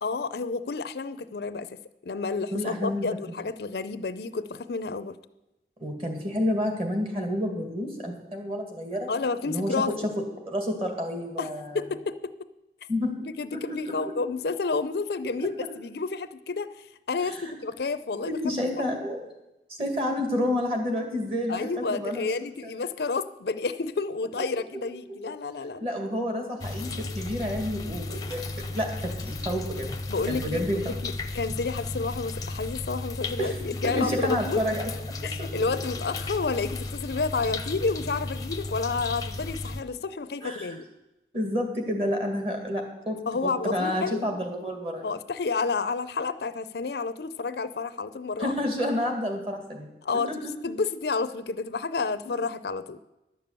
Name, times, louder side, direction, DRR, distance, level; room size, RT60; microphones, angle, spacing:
voice 1, 0.0-5.2 9.1-9.9 11.4-12.3 13.4-18.4 18.8-18.9 21.5-25.9 30.1-34.6 35.2-40.8 43.3-44.2 45.0-48.5 50.0-50.3 50.6-53.0, left 4 dB, 65° left, 13 dB, 0.5 m, -30 dB
voice 2, 2.5-3.1 5.8-9.1 9.5-9.7 10.0-10.1 10.5-11.8 12.9-13.1 13.5-14.1 17.4-17.5 18.3-19.2 19.8-22.7 25.8-28.9 29.2-30.0 30.3-31.0 33.4-33.5 33.8-34.9 35.4-35.5 40.4-40.8 41.3-45.1 48.4-49.9 50.3-50.4, left 1 dB, 30° right, 3 dB, 2.1 m, -29 dB
sound 1, 26.6-39.8, left 2 dB, 20° left, 0.6 m, -34 dB
11.5 x 6.9 x 8.1 m, 0.94 s
head